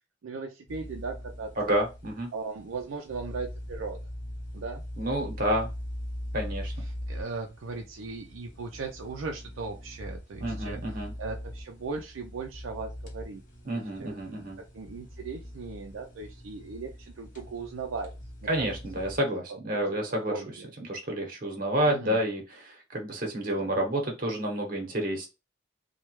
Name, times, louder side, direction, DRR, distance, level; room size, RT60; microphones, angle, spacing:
voice 1, 0.2-1.8 2.3-4.0 4.5-4.8 6.8-10.8 11.2-13.4 13.7-14.5 14.7-18.1 18.6-18.7 19.5-19.6 20.2-20.7 21.9-22.2, right 4 dB, 90° right, 2 dB, 0.4 m, -38 dB
sound 1, 0.7-19.2, equal, 45° left, 1.0 m, -41 dB
voice 2, 1.6-2.3 5.0-5.7 6.3-6.7 10.4-11.1 13.6-14.6 18.5-20.4 20.9-25.3, right 1 dB, 45° right, 1 dB, 1.0 m, -29 dB
3.2 x 2.2 x 3.0 m, 0.27 s
head